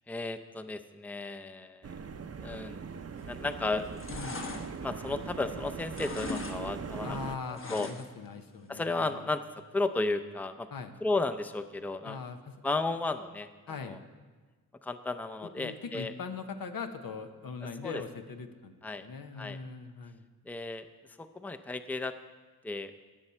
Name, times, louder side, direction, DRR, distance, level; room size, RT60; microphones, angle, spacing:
voice 1, 0.1-1.9 2.4-2.8 3.2-4.0 4.8-7.2 7.5-7.9 8.7-9.4 9.7-10.7 11.0-12.2 12.6-13.5 13.8-14.0 14.8-16.1 17.8-18.0 18.8-19.1 19.4-19.6 20.5-20.9 21.2-22.1 22.6-22.9, left 3 dB, 5° left, 9 dB, 0.5 m, -34 dB
sound 1, 1.8-7.4, right 6 dB, 45° right, 0.6 m, -41 dB
sound 2, 3.1-3.5 3.8-5.6 5.9-6.6 6.8-8.3 8.6-8.7, left 3 dB, 35° left, 1.1 m, -40 dB
voice 2, 4.1-4.4 7.0-9.3 10.7-10.9 12.0-12.6 13.7-14.0 15.4-18.8 19.0-20.2, left 5 dB, 80° left, 7 dB, 1.0 m, -41 dB
18.0 x 7.0 x 4.3 m, 1.4 s
cardioid pair, 80°, 35 cm